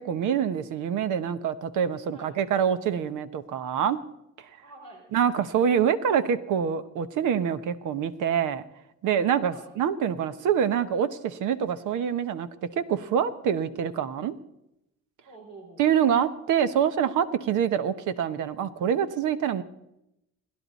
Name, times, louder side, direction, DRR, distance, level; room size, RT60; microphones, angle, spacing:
voice 1, 0.0-4.0 5.1-8.6 9.0-14.3 15.8-19.6, right 8 dB, 85° right, 12 dB, 1.0 m, -26 dB
voice 2, 4.6-5.2 9.4-9.7 13.7-14.1 15.2-15.8, right 2 dB, 65° right, -1 dB, 5.0 m, -48 dB
29.5 x 11.0 x 4.1 m, 0.85 s
cardioid pair, 90°, 30 cm